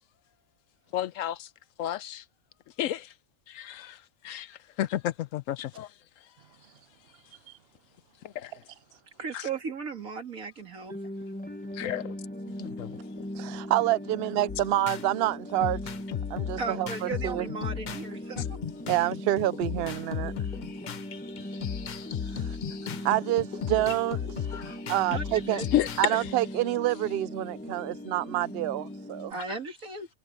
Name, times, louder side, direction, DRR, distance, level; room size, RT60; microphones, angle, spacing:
voice 1, 0.9-1.5 1.8-2.2 2.8-3.1 3.5-4.0 4.2-5.9 8.3-8.5 9.3-9.5 11.7-12.1 12.6-12.9 24.5-24.8 25.7-26.3, left 12 dB, 75° left, 1.0 m, -31 dB
voice 2, 9.2-10.9 16.6-18.6 22.3-22.4 25.1-25.7 29.3-30.1, right 4 dB, 80° right, 2.8 m, -36 dB
sound 1, 10.9-29.3, left 1 dB, 5° left, 1.2 m, -40 dB
voice 3, 13.4-15.8 16.3-16.9 17.2-17.5 18.9-20.3 23.0-25.6 26.0-29.3, right 14 dB, 60° right, 0.6 m, -27 dB
sound 2, 14.5-15.0 15.6-18.1 18.4-26.1, left 8 dB, 50° left, 0.6 m, -35 dB
omnidirectional pair, 1.4 m